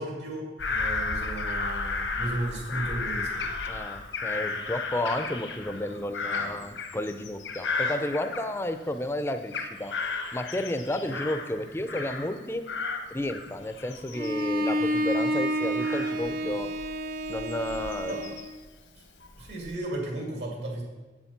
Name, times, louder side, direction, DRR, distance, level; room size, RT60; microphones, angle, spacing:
voice 1, 0.0-3.5 11.0-11.1 18.1-18.2 19.4-20.8, right 1 dB, 70° right, 0 dB, 2.6 m, -34 dB
Bird vocalization bird call bird song / Crow, 0.6-8.9 9.3-12.4 12.7-18.7 19.2-19.8, left 4 dB, 85° left, 1.2 m, -34 dB
voice 2, 3.6-10.0 10.3-12.6 13.1-16.7 17.3-18.3, left 1 dB, 15° left, 9 dB, 0.5 m, -32 dB
Bowed string instrument, 14.1-18.5, equal, 50° right, 0.7 m, -29 dB
8.2 x 7.2 x 5.8 m, 1.3 s
head